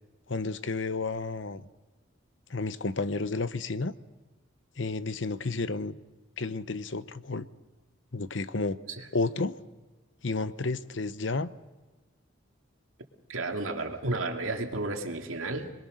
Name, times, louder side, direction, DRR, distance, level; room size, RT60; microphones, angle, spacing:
voice 1, 0.3-1.7 2.5-3.9 4.8-6.0 6.4-7.5 8.1-8.8 9.1-9.6 10.2-11.5, left 3 dB, 65° left, 14 dB, 0.9 m, -31 dB
voice 2, 13.3-15.7, right 2 dB, 90° right, 4 dB, 2.4 m, -32 dB
27.5 x 21.5 x 6.4 m, 1.2 s
head